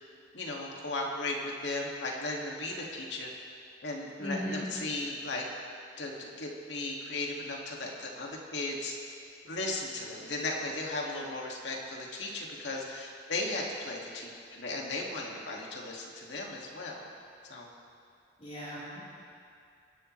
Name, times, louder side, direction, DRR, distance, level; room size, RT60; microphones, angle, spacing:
voice 1, 0.3-3.3 3.8-5.4 6.0-8.9 9.4-17.1 17.5-17.7, left 2 dB, 75° left, -1 dB, 2.2 m, -36 dB
voice 2, 4.2-4.7 18.4-19.0, equal, 35° left, -11 dB, 4.2 m, -37 dB
26.0 x 11.5 x 3.3 m, 2.4 s
head